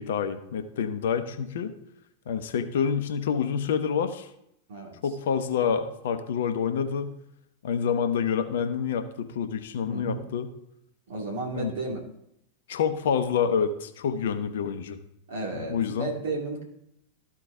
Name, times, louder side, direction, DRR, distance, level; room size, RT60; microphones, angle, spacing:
voice 1, 0.0-1.7 2.3-4.3 5.0-7.1 7.6-10.5 11.5-11.7 12.7-15.0 15.5-16.1, left 7 dB, 60° left, 9 dB, 0.7 m, -27 dB
voice 2, 9.9-10.2 11.1-12.0 15.3-16.6, right 3 dB, 60° right, 0 dB, 2.2 m, -33 dB
13.5 x 4.6 x 3.6 m, 0.77 s
figure-of-eight pair, 90°, 0 cm